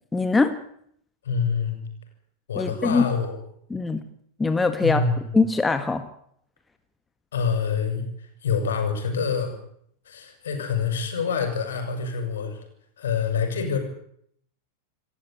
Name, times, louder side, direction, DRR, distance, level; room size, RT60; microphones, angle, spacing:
voice 1, 0.1-0.6 2.5-3.0 3.7-4.0 4.4-5.0 5.3-6.0, left 3 dB, 10° left, 9 dB, 1.7 m, -22 dB
voice 2, 1.2-1.8 2.5-3.4 4.8-5.2 7.3-9.6 10.1-12.6 13.0-13.8, left 5 dB, 65° left, 6 dB, 7.3 m, -26 dB
28.5 x 14.5 x 9.4 m, 0.69 s
figure-of-eight pair, 90°, 0 cm